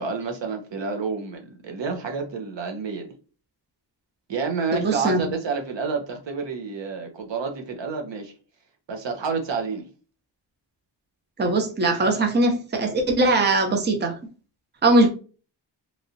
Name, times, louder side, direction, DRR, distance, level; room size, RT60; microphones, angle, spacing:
voice 1, 0.0-3.1 4.3-8.3 8.9-9.9, right 4 dB, 80° right, 0.9 m, -29 dB
voice 2, 4.7-5.2 11.4-14.2 14.8-15.1, right 2 dB, 25° right, 0.6 m, -20 dB
3.1 x 2.7 x 2.6 m
wide cardioid pair, 155°, 43 cm